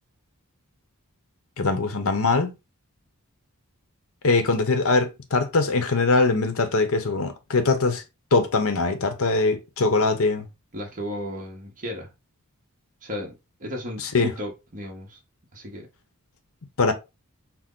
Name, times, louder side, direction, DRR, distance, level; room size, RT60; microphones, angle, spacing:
voice 1, 1.6-2.5 4.2-8.0 8.3-10.5 14.0-14.3 16.8-16.9, left 3 dB, 70° left, 0.8 m, -22 dB
voice 2, 10.7-12.1 13.0-13.3 13.6-15.2 15.5-15.9, left 1 dB, 35° right, 1.1 m, -34 dB
6.0 x 2.0 x 3.8 m
head